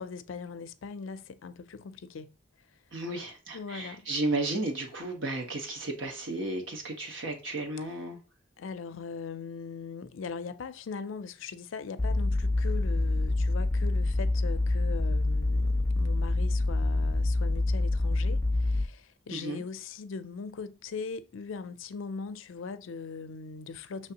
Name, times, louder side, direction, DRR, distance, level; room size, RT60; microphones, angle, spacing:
voice 1, 0.0-2.3 3.5-4.1 8.6-24.1, left 5 dB, 75° left, 0.4 m, -40 dB
voice 2, 2.9-8.2 19.3-19.6, right 2 dB, 70° right, 1.3 m, -33 dB
sound 1, 12.0-18.8, left 2 dB, 15° left, 0.5 m, -26 dB
6.0 x 3.1 x 2.8 m
head